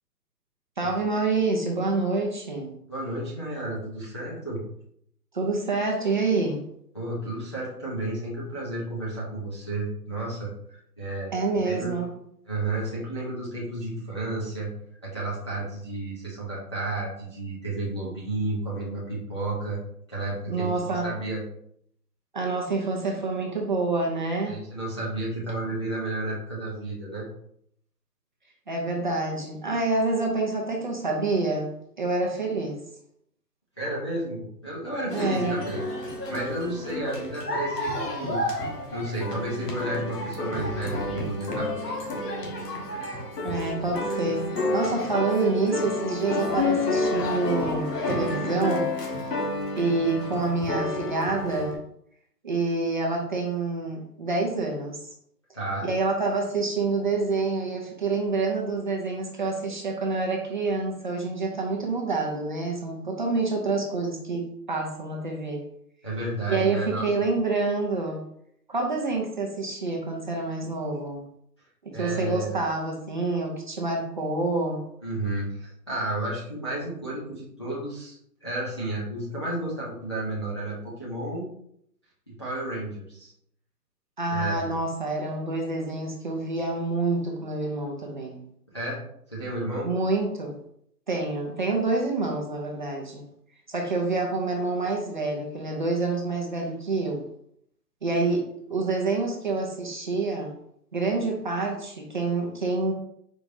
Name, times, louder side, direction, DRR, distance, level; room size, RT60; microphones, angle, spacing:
voice 1, 0.8-2.7 5.3-6.6 11.3-12.1 20.5-21.1 22.3-24.6 28.7-31.7 32.0-32.8 35.1-35.6 43.4-44.4 44.7-48.9 49.8-51.8 52.4-55.0 55.8-65.6 66.5-68.2 68.7-71.2 71.8-74.8 84.2-88.4 89.8-90.5 91.1-93.2 93.7-97.2 98.0-98.4 98.7-100.5 100.9-102.9, right 3 dB, 30° right, 0 dB, 0.6 m, -27 dB
voice 2, 2.9-4.6 6.9-10.5 11.0-12.0 12.4-14.7 15.0-19.8 20.1-21.4 24.5-27.3 33.8-35.8 36.3-38.4 38.9-42.0 55.5-55.9 66.0-67.3 71.9-72.6 75.0-81.5 82.3-83.3 84.3-84.8 88.7-89.0 89.3-89.9, right 2 dB, 20° left, -8 dB, 0.5 m, -32 dB
sound 1, 35.1-51.7, left 2 dB, 80° left, 1.5 m, -30 dB
4.7 x 4.1 x 2.6 m, 0.70 s
hypercardioid pair, 160°, 48 cm